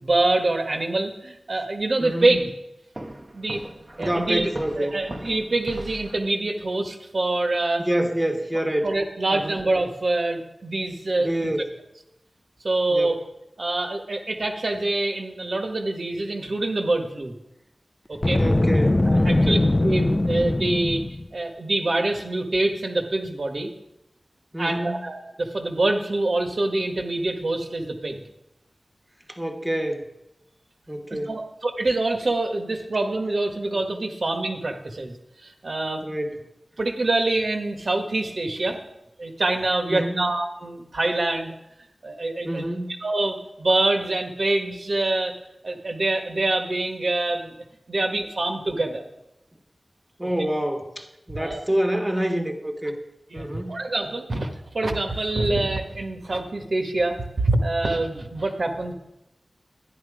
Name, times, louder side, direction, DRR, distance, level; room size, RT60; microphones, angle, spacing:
voice 1, 0.0-2.5 3.3-3.6 4.0-4.5 4.8-7.8 8.8-11.5 12.6-13.2 13.6-17.3 18.1-18.4 19.0-19.6 19.8-21.0 21.3-23.7 24.6-28.2 31.3-35.1 35.4-36.0 36.8-38.8 39.2-41.5 42.0-42.7 43.0-45.3 45.6-47.5 47.9-49.0 51.3-51.6 53.3-54.5 54.7-58.9, right 2 dB, 65° right, 4 dB, 1.6 m, -25 dB
voice 2, 2.0-2.4 4.0-5.0 7.8-8.9 9.3-9.6 11.2-11.7 12.9-13.2 18.3-19.6 24.5-25.1 29.3-30.1 30.9-31.4 36.0-36.4 39.9-40.3 42.4-43.0 50.2-53.0 53.3-53.8, right 1 dB, 10° right, 4 dB, 1.6 m, -27 dB
Walk footsteps, 2.9-6.3, right 1 dB, 30° right, 1.1 m, -38 dB
Boom, 18.1-21.3, left 2 dB, 30° left, 0.6 m, -21 dB
11.5 x 10.5 x 5.0 m, 0.87 s
wide cardioid pair, 65°, 0 cm